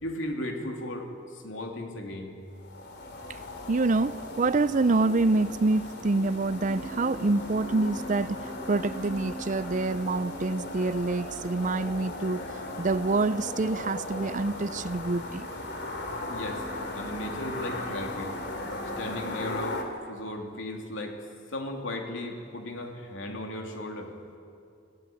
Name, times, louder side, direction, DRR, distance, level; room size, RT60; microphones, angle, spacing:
voice 1, 0.0-2.4 16.3-16.6 16.9-18.4 19.0-21.2 21.5-24.1, left 1 dB, 75° left, 3.1 m, -36 dB
sound 1, 2.5-19.8, left 1 dB, 55° left, 2.9 m, -37 dB
voice 2, 3.7-12.4 12.8-15.5, right 3 dB, 40° right, 0.5 m, -26 dB
27.0 x 15.5 x 9.2 m
head